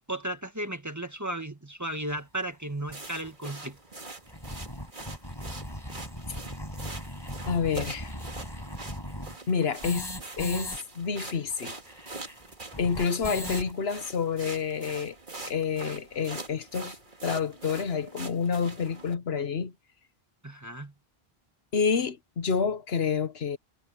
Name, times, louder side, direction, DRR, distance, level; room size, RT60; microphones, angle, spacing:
voice 1, 0.1-3.8 20.4-20.9, right 1 dB, 15° right, 1.7 m, -35 dB
sound 1, 2.1-2.2 2.9-3.0 3.2-3.3 3.6-3.7 4.1-10.8 11.0-11.1 11.3-13.7, equal, 20° left, 7.4 m, -39 dB
sound 2, 2.9-19.1, right 3 dB, 50° right, 2.3 m, -44 dB
voice 2, 7.5-8.1 9.5-10.1 10.4-11.7 12.8-15.2 15.4-17.0 17.2-19.7 21.7-23.6, left 6 dB, 75° left, 1.3 m, -28 dB
omnidirectional pair, 1.1 m